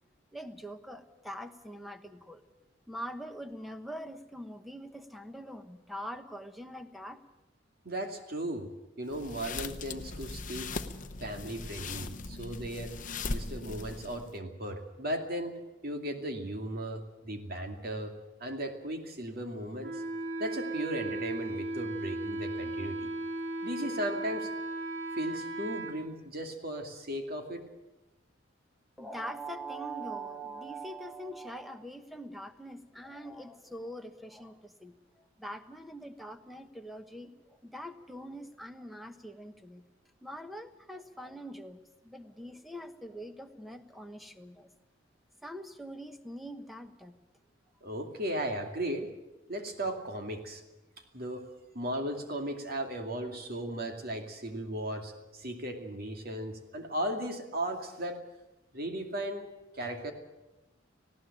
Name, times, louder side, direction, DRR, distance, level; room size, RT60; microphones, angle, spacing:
voice 1, 0.3-2.4 2.9-7.2 29.0-39.8 40.2-44.7 45.4-47.1, right 1 dB, ahead, 7 dB, 1.2 m, -43 dB
voice 2, 7.8-8.7 9.0-10.7 11.2-12.9 13.3-15.5 15.8-18.1 18.4-20.0 20.4-23.1 23.6-24.5 25.1-27.6 47.8-49.1 49.5-50.6 51.1-51.4 51.7-58.2 58.7-59.5 59.7-60.1, right 1 dB, 50° right, 4 dB, 2.5 m, -36 dB
sound 1, 9.1-14.4, left 3 dB, 40° left, 0.9 m, -39 dB
Wind instrument woodwind instrument, 19.8-26.0, right 2 dB, 70° right, 2.9 m, -36 dB
19.0 x 16.5 x 8.7 m, 1.0 s
head